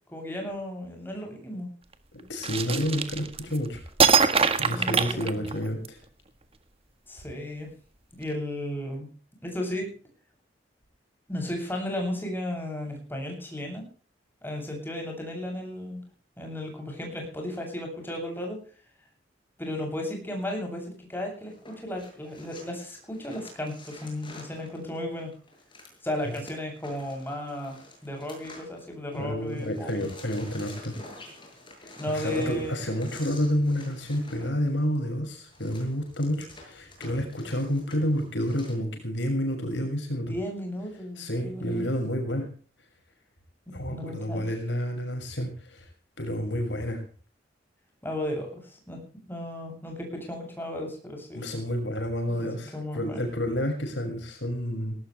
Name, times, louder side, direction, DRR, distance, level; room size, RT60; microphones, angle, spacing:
voice 1, 0.1-1.7 4.6-5.4 7.1-7.7 8.2-9.1 9.4-9.9 11.3-13.8 14.4-16.0 16.4-18.6 19.6-25.3 26.0-27.8 28.0-29.9 32.0-32.7 40.2-41.8 43.9-44.4 48.0-49.0 49.3-51.4 52.3-53.2, left 1 dB, 10° left, 1 dB, 8.0 m, -34 dB
voice 2, 2.1-3.8 4.6-6.0 26.2-26.3 29.1-31.0 31.8-40.3 41.2-42.5 43.7-45.9 46.2-47.0 51.3-55.0, equal, 75° left, 4 dB, 6.6 m, -30 dB
sound 1, 2.4-3.6 4.0-5.9, right 5 dB, 35° right, 1.7 m, -23 dB
sound 2, 21.5-29.2 29.5-38.7, left 2 dB, 25° left, 7.7 m, -48 dB
19.0 x 18.5 x 3.4 m, 0.40 s
head